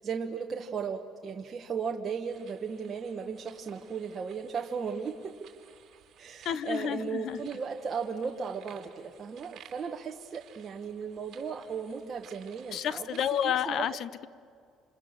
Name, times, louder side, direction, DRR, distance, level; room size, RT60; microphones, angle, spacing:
voice 1, 0.0-5.4 6.2-13.1 13.4-14.0, right 6 dB, 30° right, 2 dB, 1.3 m, -36 dB
sound 1, 2.2-13.7, right 9 dB, 50° right, 2.9 m, -57 dB
voice 2, 6.4-7.5 12.7-14.3, left 9 dB, 50° left, 17 dB, 0.8 m, -30 dB
28.0 x 27.0 x 7.5 m, 2.4 s
cardioid pair, 150°, 0 cm